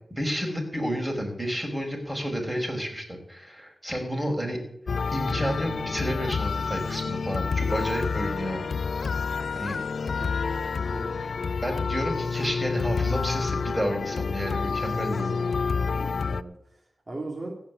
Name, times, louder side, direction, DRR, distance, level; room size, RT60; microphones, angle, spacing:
voice 1, 0.1-4.6 5.1-8.7 9.5-9.7 11.6-15.4, equal, 10° right, 1 dB, 5.2 m, -30 dB
sound 1, 4.9-16.4, left 5 dB, 75° left, 0.4 m, -28 dB
voice 2, 10.9-11.2 15.2-15.5 16.0-17.6, right 2 dB, 40° right, -1 dB, 2.8 m, -39 dB
16.0 x 5.7 x 9.5 m, 0.71 s
cardioid pair, 55°, 0 cm